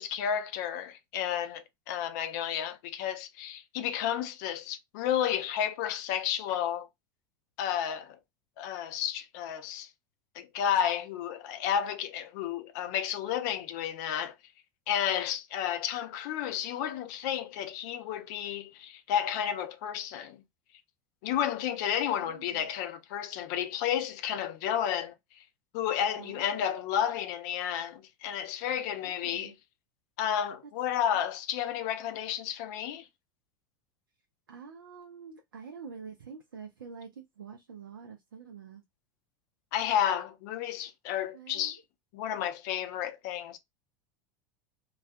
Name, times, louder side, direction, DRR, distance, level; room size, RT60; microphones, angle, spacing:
voice 1, 0.0-6.9 7.6-8.2 8.6-9.9 10.3-14.3 14.9-20.4 21.2-25.4 25.7-29.5 30.2-33.1 39.7-41.8 42.1-43.6, left 9 dB, 60° left, 0.4 m, -32 dB
voice 2, 22.2-22.7 26.2-26.7 29.0-29.5 31.0-31.2 34.5-38.8 41.3-41.8, right 6 dB, 85° right, 0.5 m, -47 dB
2.3 x 2.2 x 2.5 m
hypercardioid pair, 90°, 11 cm